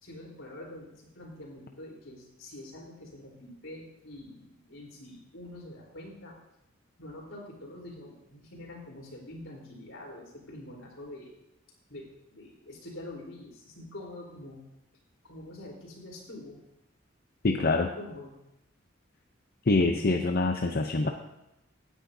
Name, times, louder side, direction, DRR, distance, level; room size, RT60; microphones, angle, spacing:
voice 1, 0.0-6.3 7.0-11.3 11.9-14.6 15.2-16.6 17.4-18.3 19.9-20.2, left 1 dB, 80° left, -1 dB, 4.0 m, -45 dB
voice 2, 17.4-17.9 19.7-21.1, left 3 dB, 50° left, 4 dB, 0.7 m, -25 dB
16.5 x 10.0 x 2.7 m, 0.88 s
head